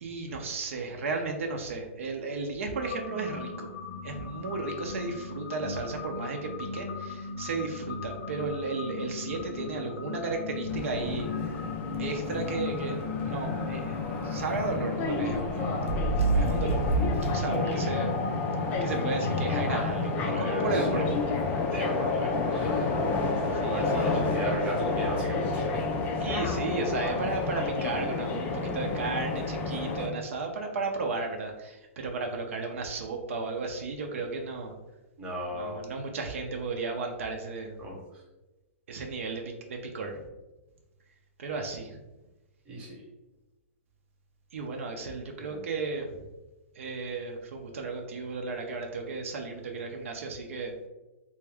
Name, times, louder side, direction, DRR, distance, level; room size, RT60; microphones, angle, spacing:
voice 1, 0.0-3.7 4.0-11.5 12.0-14.0 14.2-18.1 18.8-21.2 21.4-21.5 23.6-24.1 26.2-34.8 35.5-37.7 38.9-40.2 41.4-42.0 44.5-46.2 46.7-50.7, right 3 dB, 70° right, 3 dB, 0.6 m, -34 dB
sound 1, 2.8-21.0, left 4 dB, 75° left, 0.9 m, -38 dB
sound 2, 10.6-11.6 11.9-12.0 12.3-12.5 13.7-14.8 15.3-17.5, right 2 dB, 85° right, 1.0 m, -30 dB
sound 3, 10.7-30.1, left 3 dB, 20° left, 0.4 m, -30 dB
voice 2, 20.1-21.1 21.7-22.9 23.4-25.8 35.2-35.9 37.8-38.2 42.7-43.0 45.4-45.6, equal, 15° right, -3 dB, 1.0 m, -35 dB
3.4 x 2.6 x 3.3 m, 1.1 s
hypercardioid pair, 155°, 7 cm